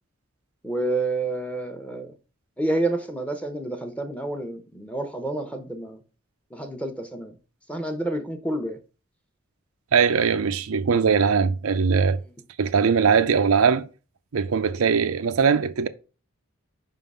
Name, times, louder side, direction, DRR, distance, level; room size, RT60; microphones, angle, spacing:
voice 1, 0.6-2.1 2.6-6.0 6.5-7.4 7.7-8.8 12.1-12.2, right 2 dB, 5° left, 0.8 m, -29 dB
voice 2, 9.9-12.2 12.6-13.9 14.3-15.9, right 6 dB, 80° right, 0.5 m, -20 dB
5.6 x 3.7 x 5.4 m
head